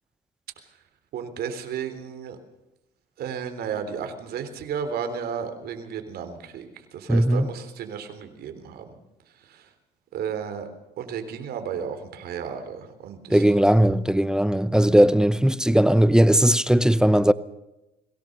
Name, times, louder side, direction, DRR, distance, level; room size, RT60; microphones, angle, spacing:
voice 1, 1.1-2.4 3.2-6.7 6.9-8.9 9.5-9.6 10.1-10.7 11.0-13.4, right 7 dB, 70° right, 3.7 m, -33 dB
voice 2, 7.1-7.5 13.3-17.3, right 1 dB, 5° right, 0.8 m, -18 dB
22.5 x 17.5 x 6.7 m
cardioid pair, 110°, 17 cm